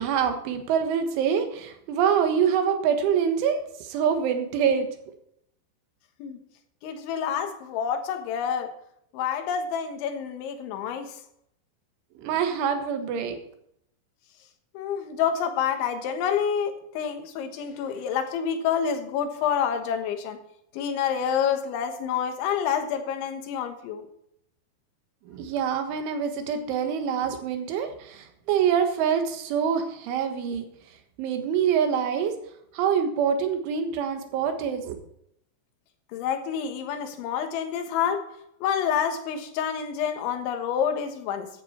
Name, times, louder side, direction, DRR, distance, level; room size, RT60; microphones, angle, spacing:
voice 1, 0.0-4.9 12.2-13.4 25.3-30.7 31.2-32.3 32.7-35.0, right 7 dB, 85° right, 6 dB, 3.9 m, -25 dB
voice 2, 6.8-8.7 9.1-11.2 14.8-20.4 20.7-24.1 36.1-38.3 38.6-41.6, left 8 dB, 80° left, 7 dB, 3.7 m, -28 dB
14.5 x 10.5 x 4.3 m, 0.74 s
omnidirectional pair, 5.4 m